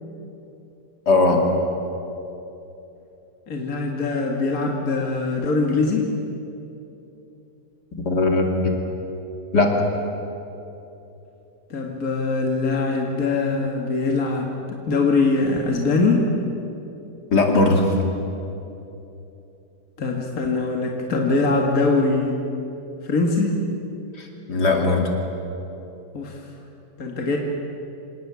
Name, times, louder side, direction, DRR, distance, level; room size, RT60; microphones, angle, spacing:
voice 1, 1.1-1.4 8.0-8.7 9.5-9.7 17.3-17.9 24.2-25.1, left 3 dB, 75° left, 1 dB, 3.3 m, -19 dB
voice 2, 3.5-6.1 11.7-16.3 20.0-22.4 23.0-23.6 26.1-26.4 27.0-27.4, left 3 dB, 60° left, 1 dB, 2.4 m, -22 dB
26.5 x 18.5 x 8.4 m, 2.9 s
omnidirectional pair, 1.8 m